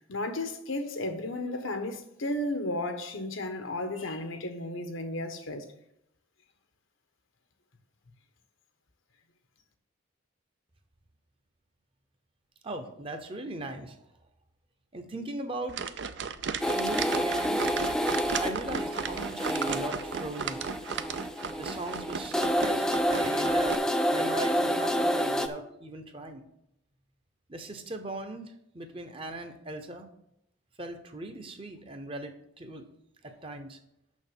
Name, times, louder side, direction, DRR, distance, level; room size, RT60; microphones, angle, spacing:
voice 1, 0.0-5.6, left 1 dB, 80° left, 1.2 m, -33 dB
voice 2, 12.6-14.0 14.9-15.8 16.7-17.7 18.1-20.6 21.6-23.8 24.1-26.5 27.5-30.1 30.8-32.9 33.2-33.8, right 1 dB, 25° right, 0.8 m, -39 dB
sound 1, 15.7-23.8, right 6 dB, 60° right, 0.5 m, -35 dB
sound 2, 16.6-25.5, equal, 5° left, 0.4 m, -29 dB
6.3 x 6.2 x 7.3 m
head